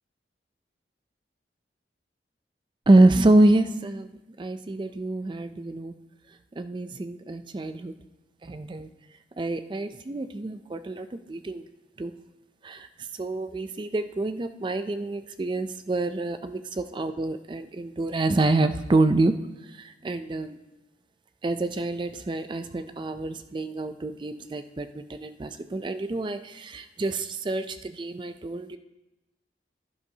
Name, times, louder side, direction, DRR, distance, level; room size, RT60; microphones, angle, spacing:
voice 1, 2.9-4.1 4.4-5.9 6.6-7.9 8.4-8.9 9.4-11.6 12.0-12.2 12.6-12.9 13.1-19.3 19.7-20.6 21.4-28.8, right 2 dB, 25° right, 10 dB, 0.4 m, -26 dB
12.0 x 11.5 x 2.8 m, 1.0 s
head